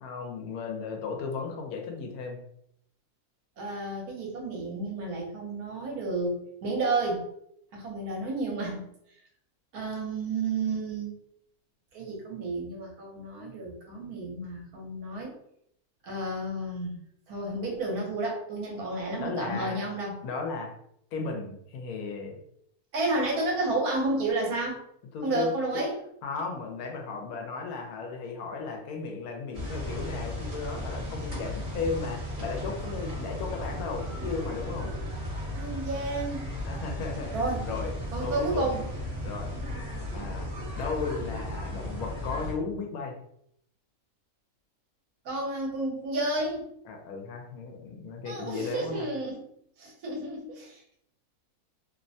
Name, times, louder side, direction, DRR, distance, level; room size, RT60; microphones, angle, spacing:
voice 1, 0.0-2.4 19.2-19.8 20.2-20.7 21.1-22.4 25.1-25.5 26.2-34.9 36.6-37.3 37.6-37.9 38.2-38.7 39.2-39.5 40.1-43.1 46.9-49.1, left 4 dB, 75° left, 2 dB, 1.0 m, -35 dB
voice 2, 3.6-7.2 7.7-8.8 9.7-11.1 11.9-15.3 16.0-17.0 17.3-20.2 22.9-24.8 25.2-26.0 35.5-36.5 37.3-37.7 38.1-38.8 45.2-46.7 48.2-49.5 49.8-51.0, right 2 dB, 75° right, -1 dB, 1.3 m, -31 dB
sound 1, 29.5-42.5, left 1 dB, 40° right, 0.9 m, -35 dB
2.9 x 2.1 x 2.6 m, 0.72 s
omnidirectional pair, 1.6 m